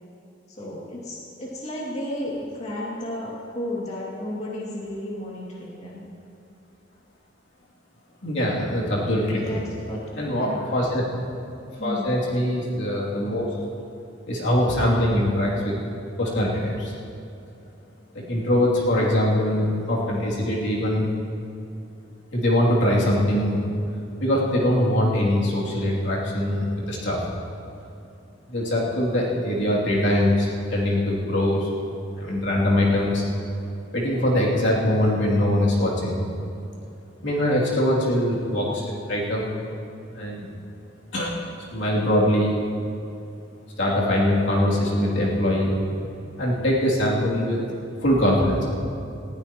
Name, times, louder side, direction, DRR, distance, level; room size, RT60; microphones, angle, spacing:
voice 1, 0.5-6.1 9.3-10.0 10.3-10.6 11.8-12.1, left 1 dB, 35° left, -6 dB, 2.5 m, -33 dB
voice 2, 8.2-9.6 10.2-11.3 11.8-13.5 14.3-15.7 16.2-16.9 18.1-21.1 22.3-23.6 24.2-27.3 28.5-31.7 32.2-33.2 33.9-36.2 37.2-38.8 39.1-39.4 40.1-40.5 41.1-41.4 41.7-42.5 43.8-45.8 46.4-47.6 48.0-48.6, left 1 dB, 70° left, -5 dB, 2.9 m, -22 dB
20.0 x 15.0 x 3.1 m, 2.7 s
head